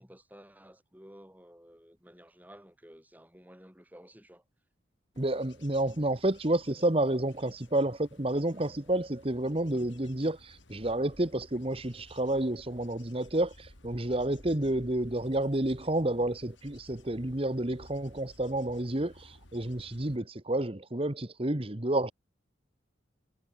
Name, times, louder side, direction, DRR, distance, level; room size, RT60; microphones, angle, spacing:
voice 1, 0.0-4.4 14.6-14.8, equal, 10° right, 6.6 m, -54 dB
Bird / Insect / Wind, 5.1-20.2, left 1 dB, 85° left, 6.9 m, -55 dB
voice 2, 5.2-22.1, right 1 dB, 30° right, 1.4 m, -30 dB
head